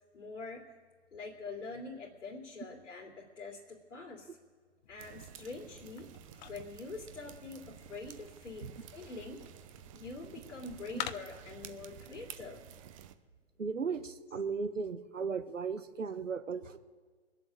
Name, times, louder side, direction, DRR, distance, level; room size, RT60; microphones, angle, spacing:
voice 1, 0.1-0.7 1.1-4.4 4.9-6.1 6.4-9.4 9.9-12.6, left 3 dB, 80° left, -3 dB, 3.0 m, -45 dB
sound 1, 4.8-11.7, left 9 dB, 35° left, 0.7 m, -48 dB
sound 2, 5.0-13.1, right 10 dB, 25° right, 0.7 m, -52 dB
voice 2, 13.6-16.8, right 5 dB, 85° right, 11 dB, 1.3 m, -36 dB
21.5 x 7.8 x 8.5 m, 1.5 s
hypercardioid pair, 135°, 37 cm